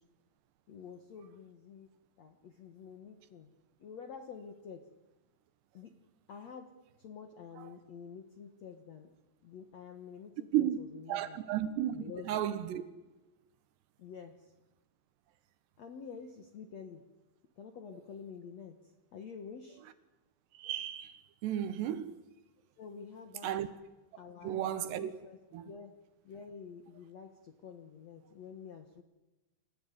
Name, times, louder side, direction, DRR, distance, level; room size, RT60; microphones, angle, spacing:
voice 1, 0.7-1.9 2.2-3.5 3.8-4.9 5.7-6.0 6.3-6.7 7.0-9.1 9.4-11.4 11.9-12.4 14.0-14.5 15.8-17.0 17.6-18.8 19.1-19.8 22.8-23.5 24.2-24.6 24.9-25.4 25.6-25.9 26.2-29.0, left 6 dB, 65° left, 1.8 m, -48 dB
voice 2, 11.1-12.0 12.3-12.8 20.5-22.2 23.4-23.7 24.4-25.1 25.5-25.7, right 11 dB, 75° right, 3.3 m, -33 dB
27.0 x 15.0 x 9.8 m
omnidirectional pair, 5.1 m